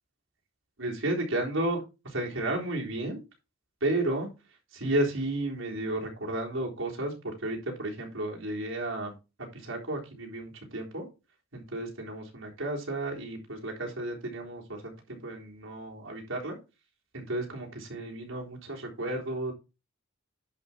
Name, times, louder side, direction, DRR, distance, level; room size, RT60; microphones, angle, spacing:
voice 1, 0.8-3.2 3.8-4.3 4.7-9.1 9.5-11.1 11.5-16.6 17.1-19.5, right 1 dB, 80° right, -1 dB, 3.7 m, -33 dB
11.0 x 5.5 x 4.3 m, 0.28 s
head